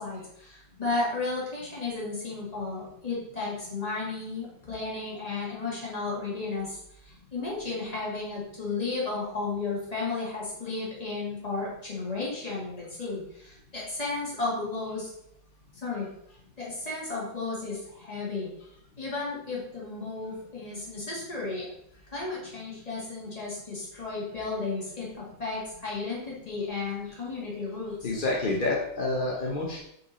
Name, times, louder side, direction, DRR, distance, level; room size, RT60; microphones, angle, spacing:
voice 1, 0.0-15.1 15.7-16.1 16.6-18.5 19.0-21.7 22.1-28.1, left 3 dB, 20° left, -5 dB, 2.1 m, -33 dB
voice 2, 28.0-29.8, left 2 dB, 45° left, -2 dB, 0.6 m, -28 dB
5.3 x 4.7 x 4.1 m, 0.76 s
omnidirectional pair, 2.1 m